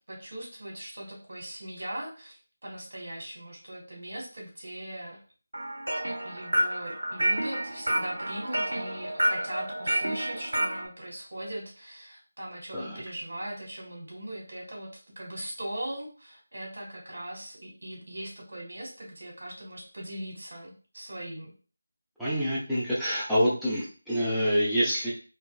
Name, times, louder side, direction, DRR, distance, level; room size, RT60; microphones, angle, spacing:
voice 1, 0.1-5.2 6.2-21.5, right 1 dB, 65° right, -1 dB, 1.5 m, -40 dB
sound 1, 5.5-10.9, right 1 dB, 85° right, 0.8 m, -29 dB
voice 2, 22.2-25.1, equal, ahead, -12 dB, 0.5 m, -26 dB
4.3 x 2.0 x 2.4 m, 0.37 s
figure-of-eight pair, 165°, 0 cm